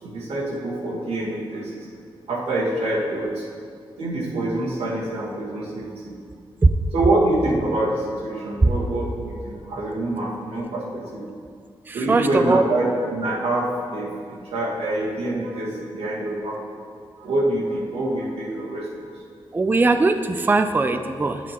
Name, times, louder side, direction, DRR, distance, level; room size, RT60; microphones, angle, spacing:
voice 1, 0.0-1.7 2.3-3.4 4.0-6.2 6.9-11.3 11.9-16.6 17.2-19.1, right 1 dB, 90° right, -4 dB, 1.4 m, -25 dB
voice 2, 11.9-12.6 19.5-21.4, right 3 dB, 20° right, 8 dB, 0.3 m, -20 dB
9.5 x 6.1 x 2.9 m, 2.2 s
cardioid pair, 65°, 10 cm